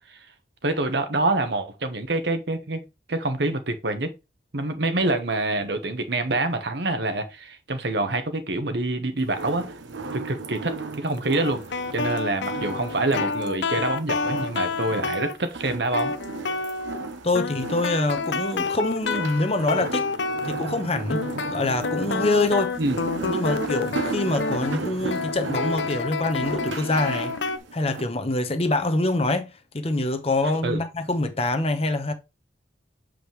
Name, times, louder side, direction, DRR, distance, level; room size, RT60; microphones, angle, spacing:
voice 1, 0.6-2.8 3.1-4.1 4.5-9.7 10.1-11.6 11.9-16.1 22.8-23.0 30.6-30.8, right 2 dB, 65° right, 1.2 m, -26 dB
sound 1, 9.3-28.0, right 3 dB, 85° right, 1.0 m, -35 dB
sound 2, 11.4-15.4 15.9-17.1 17.3-20.8 21.1-27.6, left 4 dB, 65° left, 0.6 m, -29 dB
voice 2, 17.2-20.1 20.4-21.2 21.5-22.8 23.3-27.3 27.7-32.1, left 2 dB, 30° left, 1.0 m, -25 dB
7.6 x 5.1 x 3.3 m
head